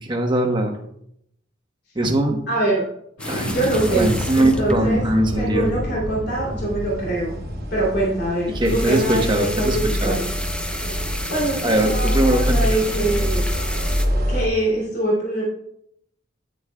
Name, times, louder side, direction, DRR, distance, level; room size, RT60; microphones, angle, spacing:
voice 1, 0.0-0.8 1.9-2.4 3.3-3.6 3.9-5.7 8.5-10.2 11.6-12.6, right 1 dB, 20° right, 2 dB, 1.1 m, -21 dB
voice 2, 2.5-2.8 3.5-4.1 4.3-5.0 5.4-7.3 7.7-9.2 9.6-10.3 11.3-13.5 14.3-15.4, right 1 dB, 50° left, -4 dB, 3.0 m, -23 dB
Explosion, 3.2-8.7, equal, 85° left, 2.3 m, -30 dB
sound 1, 3.2-5.7 8.5-14.1, left 1 dB, 5° left, 0.5 m, -32 dB
sound 2, 6.4-14.5, equal, 50° right, 1.3 m, -25 dB
9.7 x 9.6 x 2.3 m, 0.72 s
head